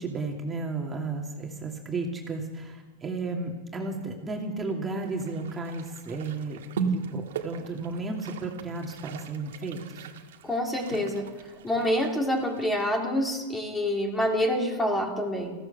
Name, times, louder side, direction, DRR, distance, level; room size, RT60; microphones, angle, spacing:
voice 1, 0.0-10.1, right 3 dB, 20° right, 0 dB, 2.6 m, -33 dB
sound 1, 5.0-13.0, right 5 dB, 75° right, 1.6 m, -38 dB
voice 2, 10.4-11.3 11.6-15.5, equal, 10° left, 2 dB, 3.1 m, -27 dB
15.0 x 13.5 x 7.0 m, 1.3 s
hypercardioid pair, 110°, 0 cm